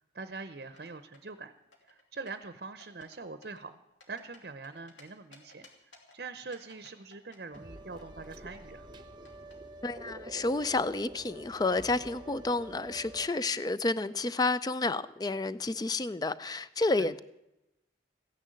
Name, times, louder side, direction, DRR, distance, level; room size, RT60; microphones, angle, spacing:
voice 1, 0.1-1.5 1.8-3.8 4.1-5.7 6.1-8.9 17.0-17.1, right 4 dB, 55° right, 11 dB, 0.7 m, -43 dB
sound 1, 0.6-1.4 1.7-2.5 2.8-3.2 3.4-5.0 5.3-6.2 6.5-9.5, left 3 dB, 90° left, 2.9 m, -57 dB
sound 2, 7.5-13.3, right 1 dB, 25° right, 0.9 m, -47 dB
voice 2, 9.8-17.2, left 2 dB, 20° left, 15 dB, 0.4 m, -30 dB
15.5 x 10.5 x 7.7 m, 0.92 s
head